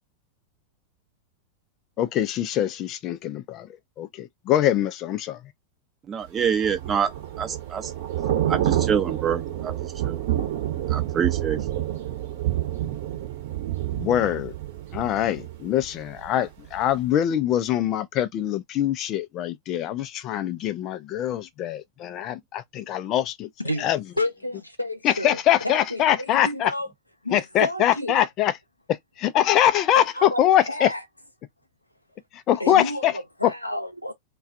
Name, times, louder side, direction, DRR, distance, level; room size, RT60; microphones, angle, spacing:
voice 1, 2.0-3.7 4.0-5.4 13.9-14.5 14.9-23.5 23.8-24.0 25.0-26.7 27.3-28.5 29.2-30.9 32.3-33.1 33.4-33.5, left 11 dB, 35° left, 0.4 m, -23 dB
voice 2, 6.1-7.1 7.4-7.9 8.5-10.2 10.9-11.6, right 7 dB, 25° right, 0.7 m, -26 dB
Thunder / Rain, 6.4-16.3 16.6-16.9, right 12 dB, 50° right, 0.9 m, -28 dB
voice 3, 24.2-26.9 27.2-28.2 29.9-31.0 32.6-34.1, left 1 dB, 85° left, 0.6 m, -30 dB
2.3 x 2.3 x 2.6 m
figure-of-eight pair, 90°, 0 cm